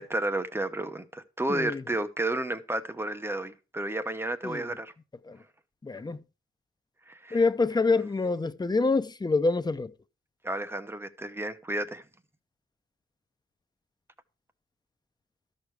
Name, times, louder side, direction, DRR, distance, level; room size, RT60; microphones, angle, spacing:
voice 1, 0.0-4.9 7.1-7.4 10.4-12.0, right 2 dB, 10° right, 1.0 m, -32 dB
voice 2, 1.5-1.8 4.4-4.7 5.3-5.4 5.8-6.2 7.3-9.9, left 3 dB, 20° left, 0.6 m, -26 dB
13.0 x 6.6 x 4.7 m
wide cardioid pair, 120°, 21 cm